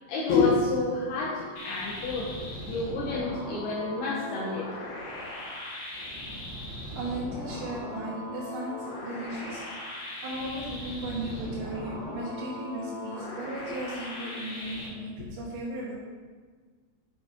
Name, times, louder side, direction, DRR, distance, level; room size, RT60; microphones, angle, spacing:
voice 1, 0.1-4.7, left 3 dB, 80° left, -6 dB, 2.3 m, -28 dB
sound 1, 1.6-14.9, left 1 dB, 60° left, 1.8 m, -39 dB
voice 2, 7.0-15.9, right 1 dB, 70° right, -7 dB, 3.0 m, -36 dB
8.1 x 5.1 x 5.0 m, 1.5 s
omnidirectional pair, 6.0 m